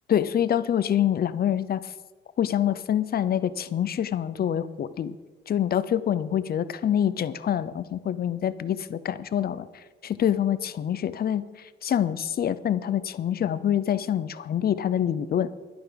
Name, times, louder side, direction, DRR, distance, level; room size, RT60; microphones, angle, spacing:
voice 1, 0.1-1.9 2.4-5.1 5.5-9.7 10.0-15.5, left 10 dB, 50° left, 15 dB, 0.7 m, -26 dB
11.0 x 10.5 x 5.1 m, 1.3 s
cardioid pair, 90°, 20 cm